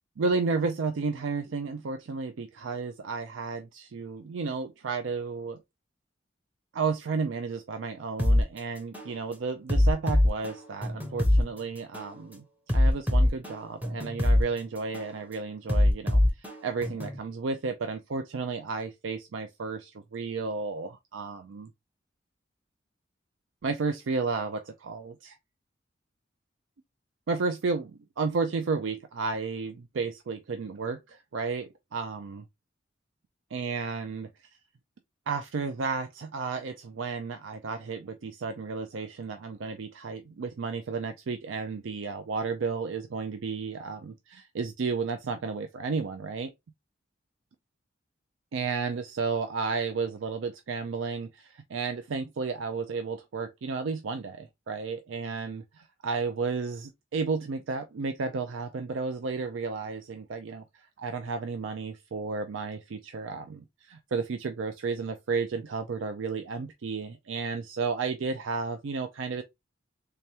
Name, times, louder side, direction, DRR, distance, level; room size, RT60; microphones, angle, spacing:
voice 1, 0.2-5.6 6.7-12.4 12.7-16.2 16.6-21.7 23.6-25.4 27.3-32.4 33.5-34.3 35.3-46.5 48.5-69.4, right 4 dB, 85° right, 0.4 m, -32 dB
sound 1, 8.2-8.4 8.9-9.1 9.7-11.4 11.9-12.1 12.7-14.4 14.9-15.1 15.7-17.2, left 1 dB, 10° right, 0.8 m, -23 dB
3.4 x 3.3 x 2.8 m
head